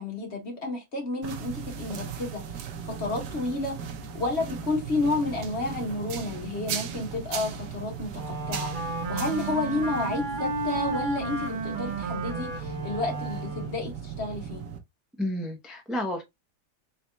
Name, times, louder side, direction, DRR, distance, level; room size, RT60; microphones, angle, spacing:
voice 1, 0.0-3.7 4.1-8.7 9.1-14.6, left 2 dB, 45° left, 1.8 m, -31 dB
sound 1, 1.2-14.8, right 7 dB, 85° right, 1.4 m, -37 dB
Wind instrument woodwind instrument, 8.1-13.9, right 3 dB, 50° right, 0.6 m, -32 dB
voice 2, 15.2-16.2, left 1 dB, ahead, 0.4 m, -31 dB
4.2 x 4.0 x 2.3 m
omnidirectional pair, 1.7 m